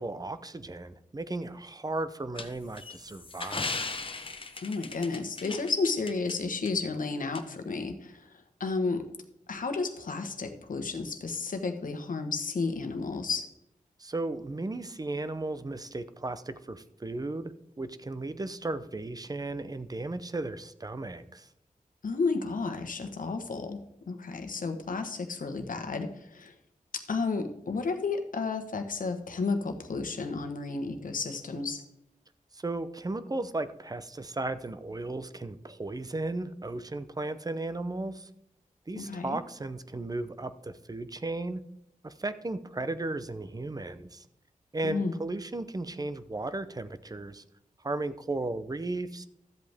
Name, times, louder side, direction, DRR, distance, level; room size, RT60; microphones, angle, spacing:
voice 1, 0.0-3.8 14.0-21.5 32.5-38.3 38.9-41.6 42.0-44.3 44.7-47.4 47.8-49.3, right 2 dB, 25° right, 13 dB, 0.7 m, -35 dB
sound 1, 2.3-6.3 6.7-6.8 7.3-7.4, left 3 dB, 40° left, 0.9 m, -37 dB
voice 2, 4.6-9.0 9.5-13.5 22.0-23.8 24.1-26.5 27.1-31.8 38.9-39.4 44.8-45.1, left 4 dB, 75° left, 6 dB, 1.2 m, -32 dB
13.0 x 8.0 x 3.5 m, 0.79 s
wide cardioid pair, 100°, 14 cm